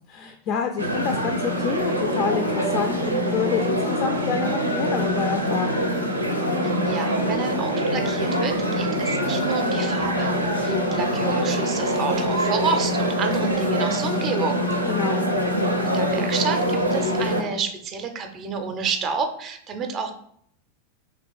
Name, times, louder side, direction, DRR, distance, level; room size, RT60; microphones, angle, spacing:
voice 1, 0.1-5.8 14.8-15.3, left 6 dB, 40° left, 4 dB, 0.4 m, -28 dB
sound 1, 0.8-17.4, equal, 85° right, 0.5 m, -24 dB
voice 2, 6.6-14.6 15.8-20.1, right 5 dB, 30° right, 6 dB, 0.5 m, -29 dB
3.0 x 2.9 x 4.3 m, 0.67 s
figure-of-eight pair, 90°, 0 cm